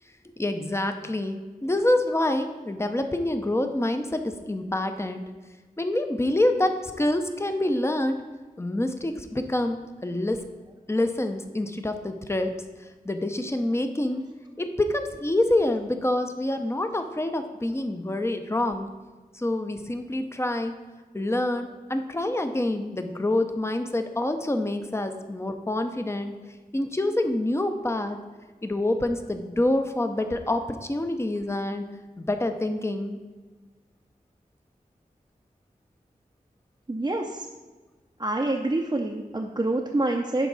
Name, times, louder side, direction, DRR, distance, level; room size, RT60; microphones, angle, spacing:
voice 1, 0.4-5.2 5.8-8.2 8.6-10.4 10.9-12.6 13.0-14.2 14.6-18.9 19.3-20.8 21.1-26.3 26.7-28.2 28.6-31.8 32.2-33.2, left 1 dB, 15° left, 7 dB, 0.7 m, -26 dB
voice 2, 36.9-37.5 38.2-40.5, right 2 dB, 25° right, 0 dB, 0.6 m, -27 dB
11.0 x 4.6 x 4.0 m, 1.3 s
wide cardioid pair, 80°, 15 cm